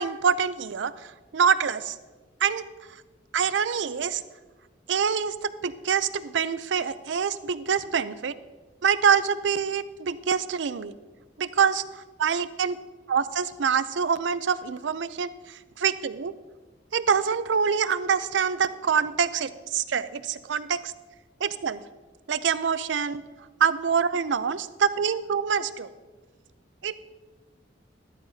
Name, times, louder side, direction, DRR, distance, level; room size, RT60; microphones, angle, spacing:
voice 1, 0.0-1.9 2.4-2.6 3.3-4.2 4.9-8.3 8.8-10.9 11.4-11.8 12.2-12.8 13.1-16.3 16.9-20.9 21.4-21.8 22.3-23.2 23.6-25.9 26.8-27.0, right 6 dB, 80° right, 14 dB, 0.5 m, -25 dB
13.5 x 12.0 x 2.8 m, 1.3 s
head